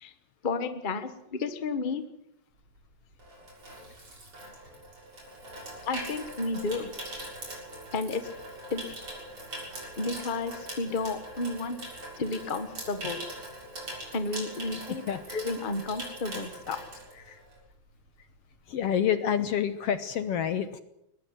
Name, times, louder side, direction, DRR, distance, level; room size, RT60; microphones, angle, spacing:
voice 1, 0.4-2.0 5.8-7.0 7.9-8.3 8.7-8.8 10.0-11.8 12.2-13.3 14.1-15.0 15.3-16.8, left 3 dB, 25° left, 10 dB, 1.1 m, -32 dB
Water tap faucet / Sink (filling or washing), 2.7-17.7 18.0-18.3, right 1 dB, 45° right, 7.7 m, -42 dB
voice 2, 15.1-15.4 17.3-17.4 18.7-20.8, left 8 dB, 65° left, 12 dB, 1.8 m, -28 dB
21.5 x 20.0 x 7.9 m, 0.79 s
omnidirectional pair, 3.3 m